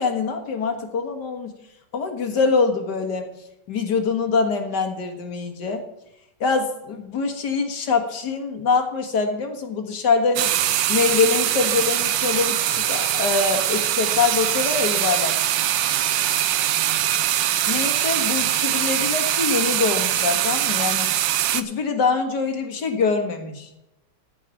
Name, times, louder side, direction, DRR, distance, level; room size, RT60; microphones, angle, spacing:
voice 1, 0.0-1.5 1.9-3.3 3.7-5.8 6.4-10.5 10.9-15.4 17.7-21.1 21.5-23.7, left 4 dB, 65° left, 5 dB, 2.1 m, -24 dB
sound 1, 10.4-21.6, right 12 dB, 80° right, 1.4 m, -22 dB
14.0 x 5.2 x 7.2 m, 0.88 s
omnidirectional pair, 2.0 m